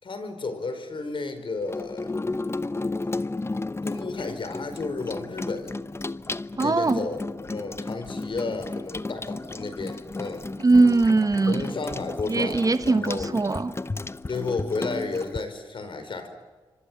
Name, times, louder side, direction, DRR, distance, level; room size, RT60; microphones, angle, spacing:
voice 1, 0.0-2.1 3.0-3.1 3.8-5.8 6.6-10.5 11.5-13.3 14.3-16.3, left 3 dB, 55° left, 5.0 m, -32 dB
Water tap faucet / Sink (filling or washing), 1.6-15.4, left 3 dB, 25° left, 0.9 m, -33 dB
voice 2, 6.6-7.1 10.6-11.6 12.3-13.7, right 3 dB, 35° right, 1.2 m, -21 dB
29.0 x 25.0 x 7.5 m
supercardioid pair, 40°, 10 cm